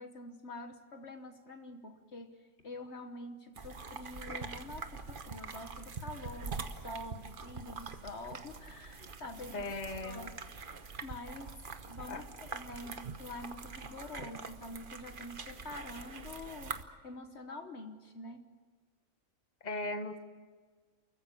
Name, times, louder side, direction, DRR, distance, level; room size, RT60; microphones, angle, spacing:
voice 1, 0.0-9.7 10.0-10.5 11.0-18.4, left 2 dB, 55° left, 6 dB, 1.5 m, -46 dB
sound 1, 3.6-16.8, right 5 dB, 45° right, 1.2 m, -44 dB
voice 2, 9.5-10.2 12.1-12.2 19.6-20.2, left 2 dB, 35° left, 7 dB, 1.5 m, -37 dB
29.5 x 14.5 x 8.5 m, 1.5 s
omnidirectional pair, 1.4 m